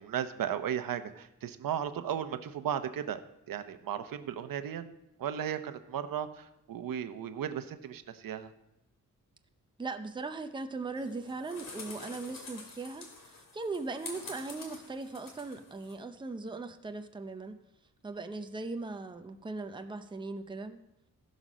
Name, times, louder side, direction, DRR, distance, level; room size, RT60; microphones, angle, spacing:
voice 1, 0.0-3.2 3.5-4.9 5.2-8.5, right 9 dB, 85° right, 9 dB, 0.9 m, -35 dB
voice 2, 9.8-17.6 18.0-20.8, right 3 dB, 15° right, 6 dB, 0.6 m, -39 dB
sound 1, 10.9-15.9, left 3 dB, 80° left, 2.5 m, -47 dB
15.5 x 5.3 x 6.3 m, 0.87 s
wide cardioid pair, 155°, 33 cm